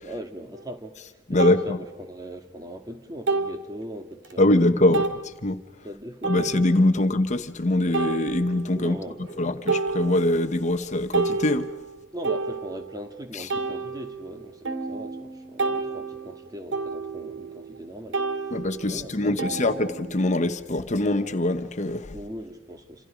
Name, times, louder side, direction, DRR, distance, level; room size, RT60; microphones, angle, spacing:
voice 1, 0.0-5.0 5.8-6.5 8.7-9.6 12.1-19.7 22.1-23.1, equal, 20° right, 1.9 m, -40 dB
sound 1, 0.5-0.6 1.4-1.6 3.3-3.7 4.2-4.3 4.9-5.2 6.2-6.9 7.9-8.8 9.2-9.4 9.7-10.5 10.9-13.0 13.5-17.8 18.1-20.4, right 4 dB, 70° right, 2.4 m, -30 dB
voice 2, 1.3-1.8 4.4-5.0 5.4-5.6 6.2-9.0 9.4-11.7 18.5-22.1, left 1 dB, 40° left, 1.1 m, -23 dB
28.5 x 27.5 x 5.1 m
head